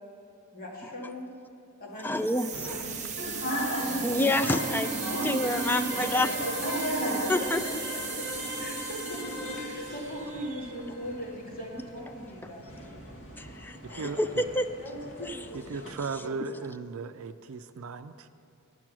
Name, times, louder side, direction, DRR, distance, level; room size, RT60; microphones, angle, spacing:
voice 1, 0.5-1.3 1.8-2.3 2.7-4.2 5.1-5.2 6.9-7.7 8.6-9.2 9.5-13.0 13.9-14.2 14.8-15.6 16.2-16.3, equal, 45° left, -3 dB, 2.2 m, -40 dB
voice 2, 2.0-2.7 4.0-6.4 7.3-7.8 13.4-14.7 15.2-15.4, left 1 dB, 10° left, 9 dB, 0.3 m, -28 dB
sound 1, 2.1-11.0, right 7 dB, 35° right, 0.8 m, -38 dB
sound 2, 2.5-15.9, right 1 dB, 75° left, 1.6 m, -37 dB
sound 3, 4.2-12.1, left 1 dB, 90° left, 2.9 m, -38 dB
voice 3, 13.9-14.4 15.5-18.3, right 4 dB, 70° right, 9 dB, 0.4 m, -37 dB
11.0 x 7.5 x 6.1 m, 2.6 s
head